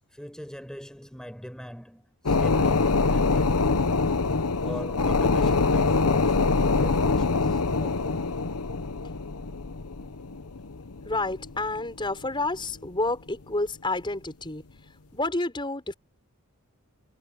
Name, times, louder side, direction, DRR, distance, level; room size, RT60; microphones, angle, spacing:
voice 1, 0.1-3.9 4.6-8.3, equal, 5° left, 4.8 m, -41 dB
sound 1, 2.3-12.3 12.6-12.7, left 3 dB, 90° left, 1.0 m, -24 dB
voice 2, 11.0-14.6 15.1-15.9, left 2 dB, 20° left, 5.7 m, -29 dB
head